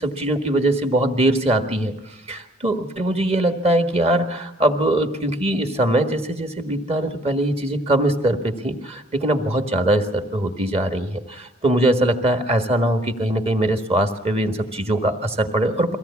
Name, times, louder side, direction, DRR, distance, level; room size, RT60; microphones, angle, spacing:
voice 1, 0.0-1.9 2.3-16.0, right 1 dB, 30° right, 7 dB, 1.7 m, -21 dB
23.0 x 17.0 x 8.4 m, 0.82 s
head